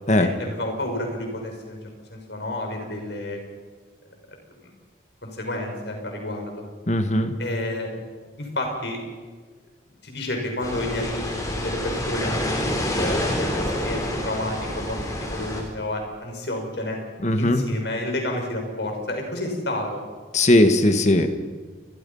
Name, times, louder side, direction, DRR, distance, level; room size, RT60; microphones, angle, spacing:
voice 1, 0.2-1.8 2.1-3.4 4.6-4.7 5.2-6.6 7.4-7.9 8.4-9.0 10.0-17.0 17.4-20.0, left 1 dB, 70° left, 2 dB, 6.2 m, -30 dB
voice 2, 6.9-7.3 17.2-17.6 20.3-21.3, left 1 dB, 40° left, 8 dB, 1.8 m, -18 dB
sound 1, 10.6-15.6, left 1 dB, 20° left, 4.1 m, -27 dB
29.0 x 22.0 x 5.7 m, 1.5 s
head